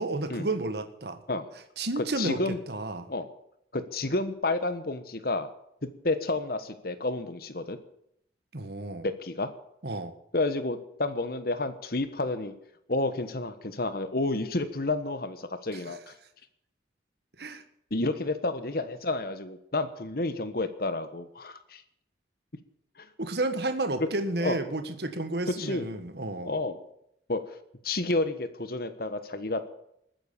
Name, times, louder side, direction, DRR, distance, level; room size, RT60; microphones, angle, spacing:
voice 1, 0.0-1.2 1.8-3.1 8.5-9.1 9.8-10.1 15.7-15.9 17.4-17.6 23.2-26.5, right 2 dB, 60° right, 9 dB, 1.6 m, -31 dB
voice 2, 2.2-2.6 3.1-3.3 3.7-5.5 6.0-7.8 9.0-9.5 10.3-12.5 12.9-16.1 17.9-21.8 23.0-23.1 24.4-24.6 25.5-25.9 26.4-26.8 27.3-27.4 27.8-29.7, left 2 dB, 55° left, 11 dB, 1.4 m, -30 dB
20.5 x 9.6 x 7.0 m, 0.75 s
head